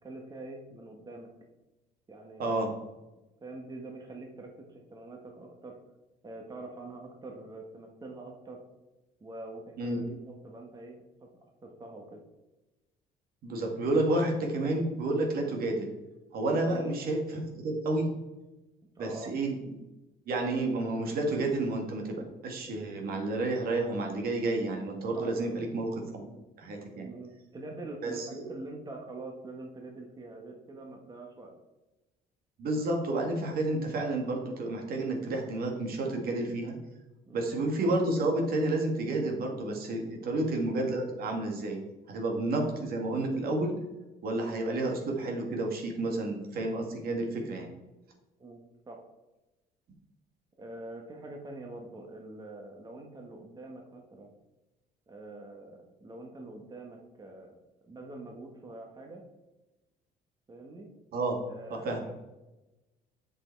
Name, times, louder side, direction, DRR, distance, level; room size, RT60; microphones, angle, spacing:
voice 1, 0.0-1.3 2.1-2.8 3.4-5.8 6.2-8.6 9.2-11.3 11.6-12.2 16.7-16.9 18.9-19.3 25.1-25.3 27.0-31.5 37.3-37.6 40.1-40.5 42.3-42.7 48.4-49.0 50.6-54.3 55.1-57.6 57.8-59.2 60.5-60.9 61.5-62.2, right 2 dB, 25° right, 1 dB, 1.4 m, -45 dB
voice 2, 13.4-15.9 16.3-18.1 19.0-19.8 20.3-26.3 26.6-27.1 28.0-28.5 32.6-36.8 37.3-41.8 42.1-43.7 44.2-47.7 61.1-61.4 61.7-62.1, right 2 dB, 60° right, 2 dB, 1.9 m, -30 dB
7.9 x 6.2 x 4.6 m, 1.1 s
cardioid pair, 110°, 17 cm